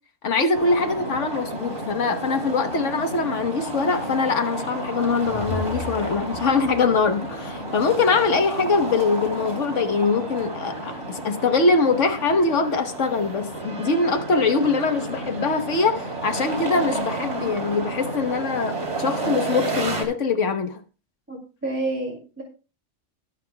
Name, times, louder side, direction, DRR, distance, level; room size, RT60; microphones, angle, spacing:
voice 1, 0.2-20.8, left 4 dB, 75° left, 1.5 m, -23 dB
sound 1, 0.5-20.0, right 2 dB, 70° right, 3.3 m, -31 dB
sound 2, 4.9-8.0, left 3 dB, 45° left, 1.8 m, -36 dB
voice 2, 21.3-22.4, right 2 dB, 10° right, 2.7 m, -29 dB
22.0 x 7.4 x 2.3 m
omnidirectional pair, 1.3 m